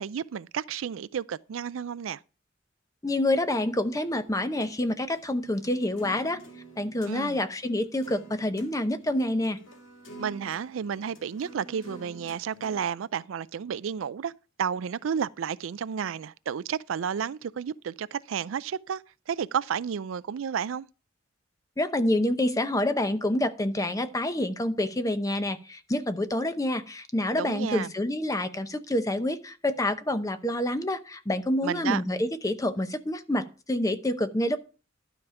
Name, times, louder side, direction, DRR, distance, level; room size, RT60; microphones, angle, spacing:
voice 1, 0.0-2.2 7.1-7.4 10.2-14.3 14.6-20.9 27.4-27.9 31.6-32.0, right 7 dB, 85° right, 0.4 m, -32 dB
voice 2, 3.0-6.4 6.8-9.6 21.8-34.6, left 1 dB, 15° left, 0.7 m, -27 dB
sound 1, 3.4-7.2 7.6-7.7 8.0-8.7 9.0-12.8, right 1 dB, 85° left, 1.9 m, -48 dB
12.0 x 5.0 x 5.6 m
head